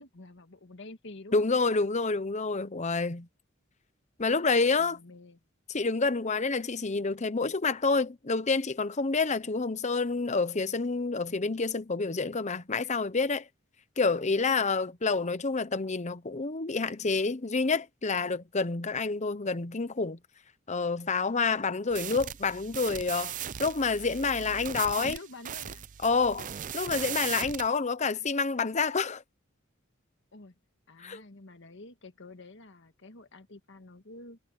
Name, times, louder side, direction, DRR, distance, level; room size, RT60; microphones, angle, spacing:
voice 1, 0.0-1.5 4.8-5.4 25.0-25.8 30.3-30.5 30.9-34.4, left 2 dB, 65° left, 1.7 m, -48 dB
voice 2, 1.3-3.3 4.2-5.0 5.7-13.5 14.0-20.2 20.7-25.2 26.0-29.2 31.0-31.2, left 4 dB, 35° left, 0.9 m, -28 dB
sound 1, 21.9-27.7, right 10 dB, 40° right, 0.5 m, -38 dB
head